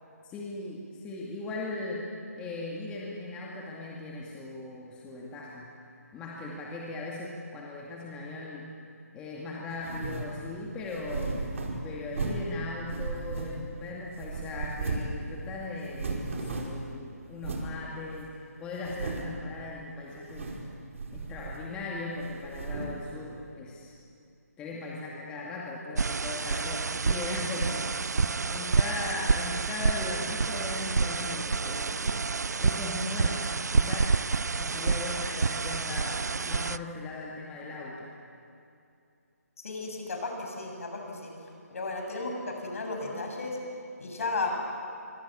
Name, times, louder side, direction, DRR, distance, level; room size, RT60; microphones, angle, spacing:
voice 1, 0.2-2.0 2.4-5.7 6.1-8.7 9.1-11.4 11.8-20.5 21.1-24.0 24.6-32.3 32.6-34.1 34.6-38.1, left 3 dB, 10° left, -4 dB, 2.2 m, -38 dB
sound 1, 9.8-10.3 10.9-12.5 12.9-13.8 14.2-15.2 15.4-15.5 15.8-16.9 17.4-17.7 18.2-18.3 18.8-19.4 20.2-20.7 20.9-21.8 22.2-23.0, right 3 dB, 55° right, 4.7 m, -35 dB
sound 2, 26.0-36.8, right 4 dB, 80° right, 0.6 m, -28 dB
voice 2, 39.6-41.3 41.7-43.6 44.0-44.5, left 3 dB, 55° left, 2 dB, 7.5 m, -34 dB
25.5 x 25.0 x 8.6 m, 2.5 s
hypercardioid pair, 160°, 9 cm